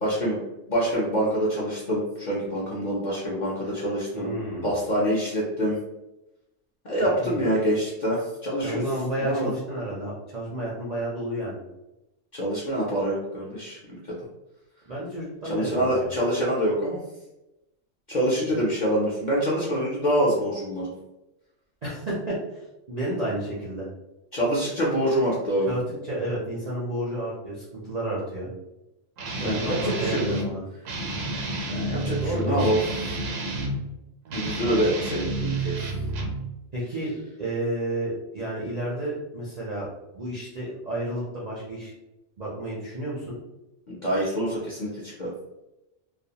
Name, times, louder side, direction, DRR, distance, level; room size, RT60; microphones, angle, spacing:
voice 1, 0.0-0.4 0.7-4.3 4.6-5.8 6.8-8.8 9.2-9.5 12.3-14.2 15.4-17.0 18.1-20.9 24.3-25.8 29.3-30.2 31.7-32.8 34.3-35.8 43.9-45.3, equal, 50° left, -6 dB, 0.5 m, -26 dB
voice 2, 4.1-4.7 7.2-7.5 8.6-11.6 14.9-16.1 21.8-23.9 25.7-28.5 29.4-30.6 32.2-32.6 36.7-39.9 40.1-41.9 42.4-43.4, right 1 dB, 55° right, -6 dB, 0.4 m, -31 dB
Guitar, 29.2-30.5 30.9-33.8 34.3-36.4, right 1 dB, 85° right, 1.0 m, -30 dB
2.4 x 2.1 x 2.7 m, 0.94 s
omnidirectional pair, 1.3 m